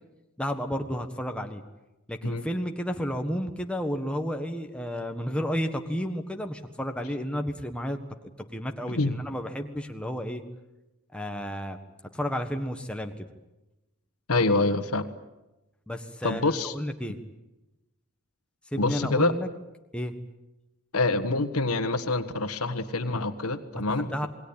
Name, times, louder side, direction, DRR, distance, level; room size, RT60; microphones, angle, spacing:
voice 1, 0.4-1.6 2.1-8.0 8.5-10.4 11.1-11.8 12.1-13.3 15.9-16.4 16.7-17.2 18.7-19.5 19.9-20.1 23.7-23.8 24.1-24.3, equal, 5° left, 4 dB, 1.4 m, -31 dB
voice 2, 8.9-9.2 14.3-15.2 16.2-16.7 18.8-19.3 20.9-24.3, left 2 dB, 85° left, 9 dB, 1.5 m, -26 dB
27.5 x 20.5 x 8.9 m, 0.99 s
head